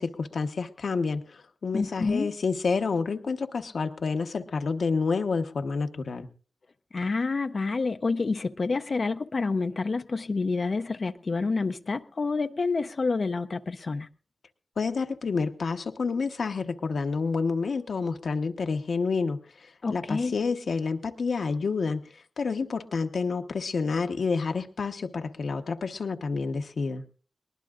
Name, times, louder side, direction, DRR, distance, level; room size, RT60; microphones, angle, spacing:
voice 1, 0.0-6.3 14.8-27.0, left 4 dB, 80° left, 1.1 m, -29 dB
voice 2, 1.7-2.3 6.9-14.1 19.8-20.3, left 4 dB, 60° left, 0.6 m, -28 dB
21.5 x 19.5 x 2.5 m
cardioid pair, 45°, 0 cm